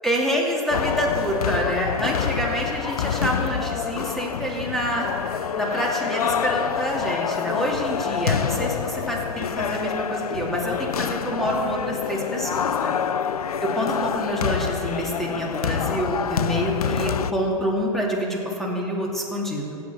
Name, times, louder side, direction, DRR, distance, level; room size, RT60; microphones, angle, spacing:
voice 1, 0.0-5.1 5.6-12.9 13.6-19.8, equal, ahead, -2 dB, 2.6 m, -27 dB
sound 1, 0.7-17.3, left 7 dB, 85° left, 0.5 m, -27 dB
16.5 x 7.1 x 5.8 m, 2.8 s
hypercardioid pair, 105°, 18 cm